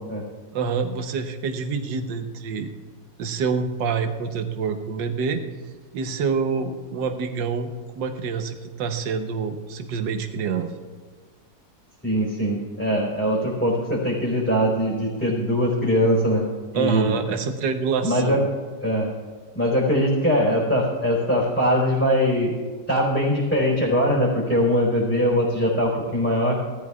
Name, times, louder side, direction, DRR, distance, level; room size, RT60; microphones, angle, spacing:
voice 1, 0.5-2.7 3.2-5.4 5.9-10.7 16.7-18.5, right 5 dB, 80° right, 7 dB, 1.6 m, -26 dB
voice 2, 12.0-16.4 16.7-17.2 18.0-18.4 18.8-19.1 19.5-22.5 22.9-26.6, equal, 5° left, -6 dB, 3.9 m, -21 dB
17.5 x 13.5 x 2.4 m, 1.4 s
omnidirectional pair, 1.9 m